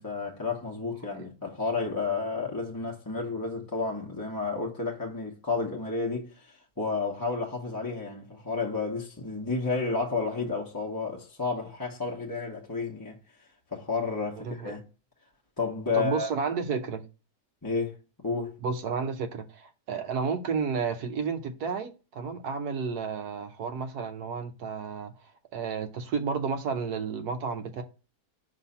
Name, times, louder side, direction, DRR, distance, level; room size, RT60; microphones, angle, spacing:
voice 1, 0.0-13.2 13.7-14.8 15.6-16.3 17.6-18.0 18.2-18.5, left 4 dB, 15° left, 0.9 m, -31 dB
voice 2, 14.4-14.8 15.9-17.0 18.6-25.1 25.5-27.8, right 5 dB, 75° right, 1.2 m, -31 dB
5.5 x 3.2 x 5.4 m
omnidirectional pair, 1.7 m